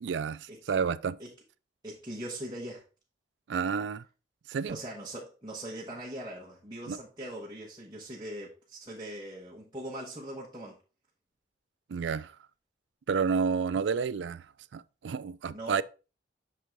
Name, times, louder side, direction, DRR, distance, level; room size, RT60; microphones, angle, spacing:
voice 1, 0.0-1.2 3.5-4.0 4.5-4.8 6.9-7.0 11.9-12.3 13.1-14.5 14.7-15.8, right 6 dB, 80° right, 0.4 m, -30 dB
voice 2, 1.8-2.8 4.7-10.8 15.5-15.8, right 1 dB, 25° right, 1.1 m, -41 dB
6.7 x 3.7 x 4.5 m
head